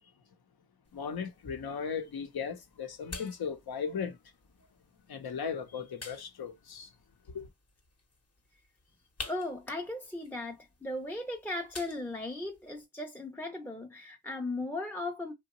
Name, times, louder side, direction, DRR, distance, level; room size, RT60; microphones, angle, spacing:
sound 1, 0.8-12.9, left 3 dB, 40° left, 0.9 m, -51 dB
voice 1, 0.9-4.2 5.1-6.9 7.3-7.5, left 6 dB, 75° left, 0.7 m, -37 dB
voice 2, 9.3-15.3, left 2 dB, 5° left, 0.5 m, -37 dB
2.8 x 2.1 x 2.9 m
cardioid pair, 40°, 38 cm